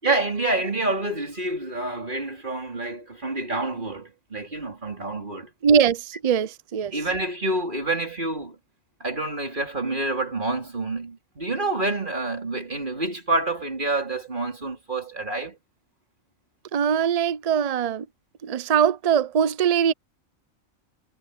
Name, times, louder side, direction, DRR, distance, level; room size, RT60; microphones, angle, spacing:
voice 1, 0.0-5.5 6.9-8.6 9.0-15.6, right 2 dB, 35° right, 4.3 m, -28 dB
voice 2, 5.6-6.9 16.7-18.1 18.4-19.9, right 7 dB, 70° right, 0.3 m, -21 dB
omnidirectional pair, 1.4 m